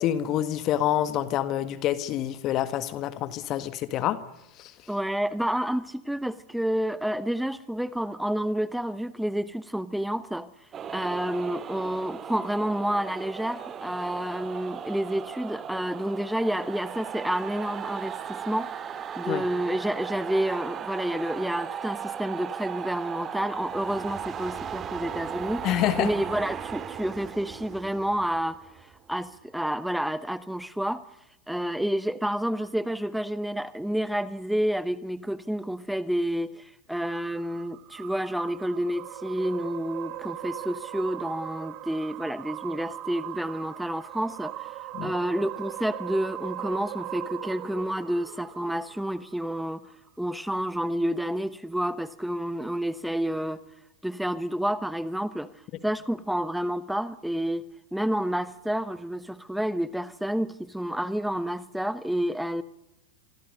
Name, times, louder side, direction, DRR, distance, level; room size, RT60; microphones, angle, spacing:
voice 1, 0.0-4.2 4.6-4.7 19.3-19.4 25.6-26.1 44.9-45.1, left 12 dB, 45° left, 13 dB, 1.7 m, -27 dB
voice 2, 4.9-31.0 31.5-49.9 50.2-53.6 54.0-55.5 55.8-57.6 57.9-62.6, equal, ahead, 15 dB, 1.0 m, -29 dB
sound 1, 10.7-29.3, right 8 dB, 30° right, 2.3 m, -37 dB
sound 2, 37.0-49.4, right 14 dB, 45° right, 1.7 m, -39 dB
26.0 x 24.5 x 6.6 m, 0.88 s
hypercardioid pair, 95°, 0 cm